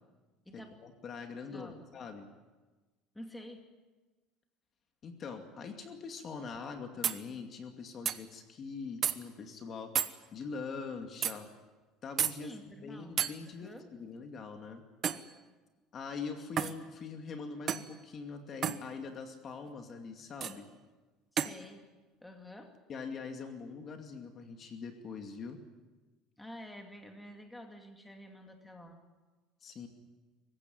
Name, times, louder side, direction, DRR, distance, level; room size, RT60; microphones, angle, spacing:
voice 1, 0.5-2.3 5.0-11.5 12.0-14.8 15.9-20.7 22.9-25.6 29.6-29.9, left 5 dB, 35° left, 5 dB, 2.4 m, -43 dB
voice 2, 1.5-1.9 3.1-3.6 12.4-13.9 21.3-21.9 22.2-22.7 26.4-29.0, left 1 dB, 5° left, 3 dB, 2.5 m, -49 dB
sound 1, 6.6-6.7 7.0-7.2 8.1-8.2 9.0-9.2 10.0-10.1 11.2-11.4 12.2-12.4 13.2-13.3 15.0-15.3 16.6-16.8 17.7-17.9 18.6-18.8 20.4-20.6 21.4-21.6, right 9 dB, 40° right, 1.1 m, -31 dB
24.0 x 16.0 x 9.5 m, 1.2 s
cardioid pair, 135°, 0 cm